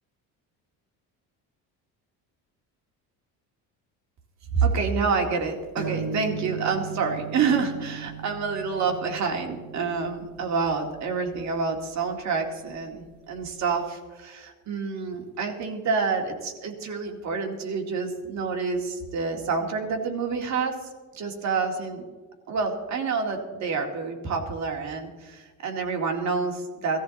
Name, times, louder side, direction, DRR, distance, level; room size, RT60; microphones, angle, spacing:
voice 1, 4.5-20.9 21.1-22.0 22.5-27.0, right 5 dB, 45° right, 2 dB, 2.0 m, -28 dB
sound 1, 5.8-13.3, right 6 dB, 20° right, 5.2 m, -38 dB
18.0 x 14.0 x 4.1 m, 1.4 s
cardioid pair, 150°, 38 cm